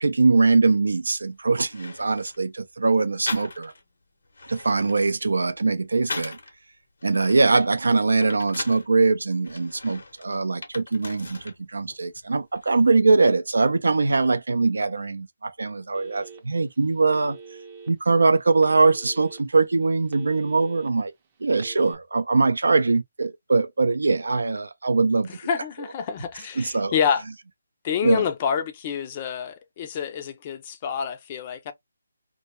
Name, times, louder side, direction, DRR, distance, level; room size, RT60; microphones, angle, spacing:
voice 1, 0.0-3.7 4.5-6.4 7.0-17.4 17.9-21.1 21.4-25.3 26.6-26.9 28.0-28.2, right 3 dB, 80° right, 0.4 m, -22 dB
sound 1, 1.2-1.3 1.7-2.4 3.3-3.9 4.2-6.5 7.0-8.9 9.4-11.6 11.9-12.7, left 3 dB, 70° left, 0.7 m, -38 dB
Telephone, 15.9-16.6 17.1-17.9 18.6-19.4 19.8-20.9 21.5-22.0, right 5 dB, 30° right, 0.5 m, -43 dB
voice 2, 25.5-27.2 27.8-31.7, left 7 dB, 30° left, 0.4 m, -27 dB
2.2 x 2.2 x 2.8 m
figure-of-eight pair, 155°, 0 cm